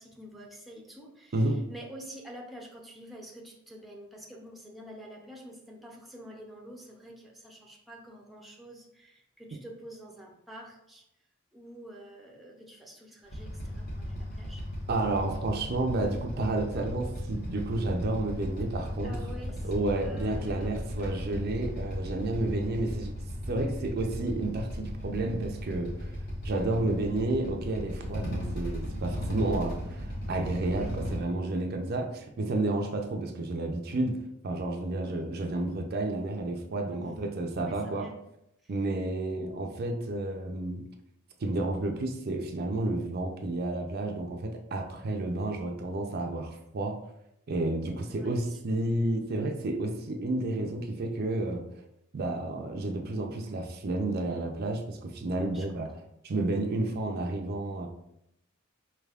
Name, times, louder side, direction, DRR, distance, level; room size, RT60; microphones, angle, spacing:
voice 1, 0.0-11.0 11.5-14.6 19.0-19.7 20.0-20.7 30.7-31.0 35.0-35.3 36.9-37.2 37.6-38.2 38.6-38.7 48.1-48.6 55.5-55.8, equal, ahead, -1 dB, 0.6 m, -48 dB
voice 2, 1.3-1.6 14.9-19.3 19.6-23.1 23.5-26.1 26.4-38.1 38.7-40.9 41.4-47.0 47.5-51.7 52.1-55.9 56.2-57.9, right 2 dB, 50° right, 3 dB, 0.5 m, -31 dB
Motorcycle / Idling, 13.3-31.2, equal, 55° left, 1.2 m, -36 dB
4.8 x 3.4 x 2.4 m, 0.80 s
head